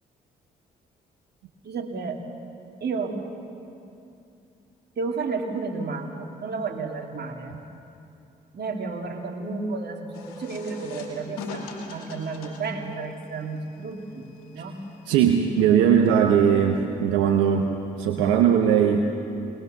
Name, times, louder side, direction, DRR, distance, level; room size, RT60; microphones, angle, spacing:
voice 1, 1.6-2.2 2.8-3.2 5.0-7.6 8.5-14.3 14.5-14.8, right 4 dB, 55° right, 2 dB, 2.6 m, -32 dB
sound 1, 10.1-16.7, left 4 dB, 90° left, 2.3 m, -43 dB
voice 2, 15.1-19.1, right 8 dB, 85° right, 3 dB, 1.0 m, -20 dB
21.0 x 20.5 x 6.7 m, 2.6 s
hypercardioid pair, 50°, 20 cm